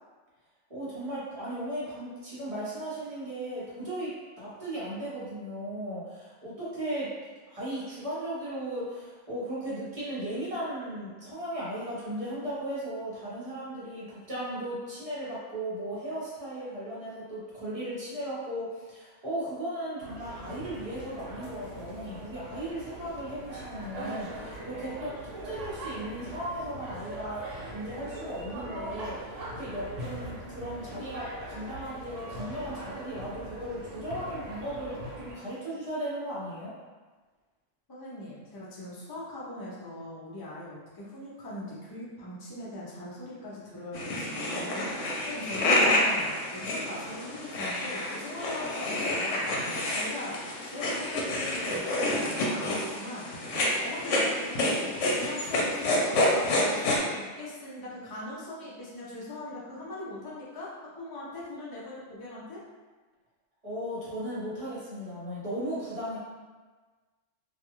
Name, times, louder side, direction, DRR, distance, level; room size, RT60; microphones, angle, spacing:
voice 1, 0.7-7.1 7.5-36.8 63.6-66.2, right 1 dB, 35° right, -8 dB, 0.8 m, -36 dB
sound 1, 20.0-35.3, right 1 dB, 85° right, 1.1 m, -41 dB
voice 2, 37.9-60.7 61.0-62.6, left 1 dB, 40° left, -6 dB, 0.3 m, -41 dB
sound 2, 43.9-57.0, left 1 dB, 85° left, 0.9 m, -28 dB
2.4 x 2.3 x 2.9 m, 1.3 s
omnidirectional pair, 1.2 m